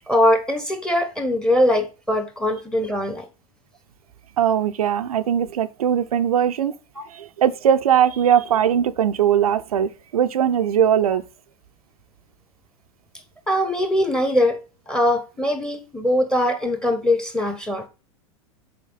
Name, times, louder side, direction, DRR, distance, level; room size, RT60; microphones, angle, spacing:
voice 1, 0.1-3.3 7.0-7.1 13.5-14.6 14.9-17.9, left 1 dB, 5° left, 1.3 m, -21 dB
voice 2, 4.4-6.7 7.1-11.2, right 9 dB, 80° right, 0.6 m, -20 dB
6.5 x 4.6 x 4.0 m
hypercardioid pair, 100°, 19 cm